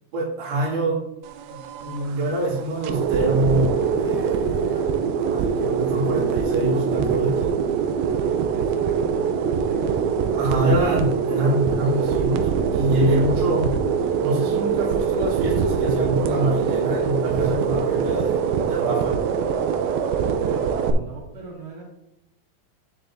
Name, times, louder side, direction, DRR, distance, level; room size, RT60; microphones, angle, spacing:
voice 1, 0.1-1.0 1.4-4.8 5.3-7.4 10.3-13.8 14.2-19.2, right 1 dB, 50° right, -6 dB, 3.2 m, -25 dB
sound 1, 1.2-20.9, right 7 dB, 85° right, 2.5 m, -23 dB
voice 2, 4.6-5.1 8.5-10.2 20.3-21.8, right 3 dB, 65° right, -5 dB, 3.7 m, -41 dB
9.9 x 7.3 x 2.7 m, 0.86 s
omnidirectional pair, 4.2 m